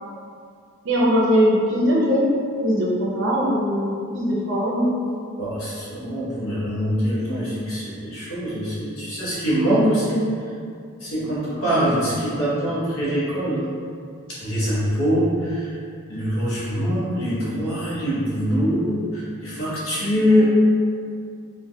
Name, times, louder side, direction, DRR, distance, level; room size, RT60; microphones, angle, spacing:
voice 1, 0.8-2.2 2.6-4.9 11.0-11.3 11.6-11.8 20.0-20.1, equal, 55° right, -5 dB, 0.5 m, -21 dB
voice 2, 5.4-10.2 11.0-13.6 14.3-15.8 16.1-20.5, equal, 75° left, -8 dB, 1.0 m, -23 dB
3.1 x 2.2 x 2.6 m, 2.3 s
head